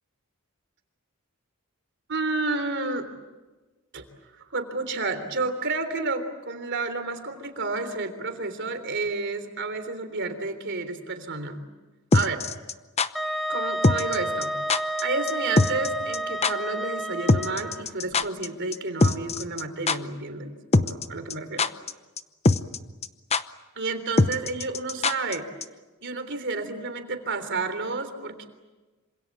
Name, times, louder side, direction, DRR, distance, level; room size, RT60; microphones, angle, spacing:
voice 1, 2.1-3.1 3.9-4.0 4.3-11.6 12.1-12.5 13.5-14.5 15.0-21.7 23.8-25.5 26.0-28.5, right 3 dB, 55° right, 9 dB, 3.5 m, -30 dB
sound 1, 12.1-13.1 13.8-14.2 14.4-14.5 14.7-15.0 15.3-15.4 15.6-16.2 16.4-16.5 17.3-18.5 18.7-18.8 19.0-19.6 19.9-20.0 20.7-21.0 21.3-21.9 22.2-22.3 22.4-22.8 23.0-23.1 23.3-23.4 24.2-25.3 25.6-25.7, left 3 dB, 30° left, 0.8 m, -21 dB
Wind instrument woodwind instrument, 13.1-17.8, right 1 dB, ahead, 1.3 m, -30 dB
27.0 x 26.5 x 7.6 m, 1.2 s
head